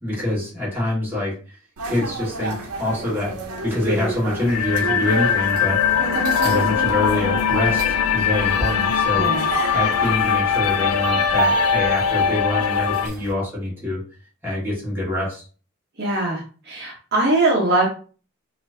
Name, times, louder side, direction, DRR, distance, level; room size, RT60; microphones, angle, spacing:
voice 1, 0.0-1.3 1.9-3.3 3.6-5.8 6.4-9.3 9.7-14.0 14.4-15.4, left 1 dB, 10° right, -7 dB, 1.6 m, -25 dB
sound 1, 1.8-13.3, right 3 dB, 80° right, 0.8 m, -29 dB
sound 2, 4.5-13.1, left 8 dB, 80° left, 0.3 m, -21 dB
voice 2, 9.1-9.5 16.0-17.9, right 2 dB, 45° right, -3 dB, 0.9 m, -21 dB
4.2 x 2.6 x 2.6 m, 0.38 s
head